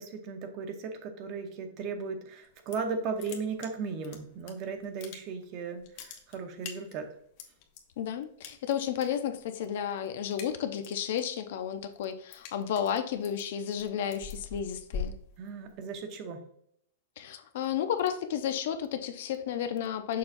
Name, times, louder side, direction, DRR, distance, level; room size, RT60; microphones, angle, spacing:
voice 1, 0.0-7.2 15.4-16.4, right 5 dB, 35° right, 0.8 m, -36 dB
sound 1, 2.4-2.9 3.2-4.5 4.8-5.5 5.8-7.8 8.4-9.1 9.4-9.7 10.0-11.0 11.4-16.0, left 6 dB, 40° left, 0.9 m, -42 dB
voice 2, 8.0-15.1 17.2-20.2, left 9 dB, 60° left, 0.6 m, -32 dB
6.6 x 5.5 x 2.6 m
supercardioid pair, 165°, 0 cm